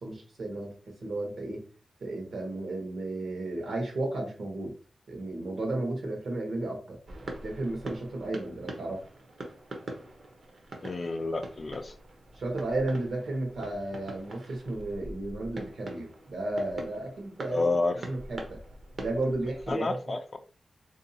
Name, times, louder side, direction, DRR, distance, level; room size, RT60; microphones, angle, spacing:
voice 1, 0.0-1.6 2.0-4.8 5.1-7.0 7.4-9.0 12.3-17.6 18.0-18.6 19.0-20.2, right 2 dB, 65° right, 1 dB, 1.1 m, -33 dB
sound 1, 7.1-19.7, right 1 dB, 50° right, 0.7 m, -44 dB
voice 2, 10.8-11.9 17.5-18.0 19.7-20.4, left 3 dB, 30° left, 8 dB, 0.3 m, -29 dB
3.7 x 2.7 x 2.7 m, 0.40 s
wide cardioid pair, 175°, 0 cm